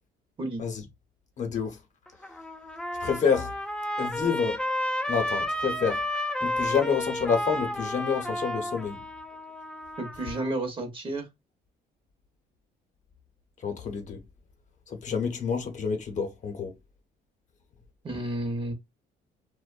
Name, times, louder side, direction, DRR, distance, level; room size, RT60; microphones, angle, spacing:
voice 1, 1.4-1.8 3.0-3.5 4.0-4.6 5.1-6.0 6.4-9.0 13.6-14.2 14.9-16.7, left 6 dB, 45° left, 0.7 m, -28 dB
Trumpet, 2.1-10.5, left 1 dB, 5° left, 0.3 m, -32 dB
voice 2, 10.0-11.3 18.0-18.7, right 2 dB, 30° right, 0.8 m, -31 dB
2.5 x 2.1 x 2.4 m
cardioid pair, 110°, 17 cm